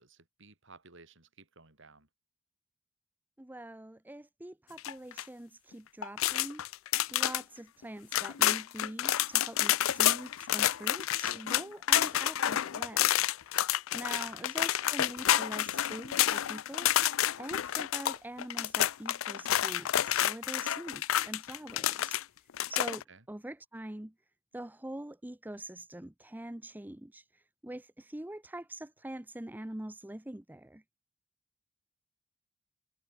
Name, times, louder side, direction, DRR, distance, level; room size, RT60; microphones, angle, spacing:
voice 1, 0.0-2.1 14.2-14.7 23.1-23.2, right 3 dB, 60° right, 3.9 m, -57 dB
voice 2, 3.4-6.6 7.1-13.6 13.9-16.9 17.4-22.2 22.7-24.1 24.5-30.8, right 1 dB, 10° right, 0.6 m, -44 dB
sound 1, 4.8-5.2 6.0-7.4 7.8-7.9 8.1-22.2 22.5-23.0, left 12 dB, 75° left, 0.5 m, -29 dB
head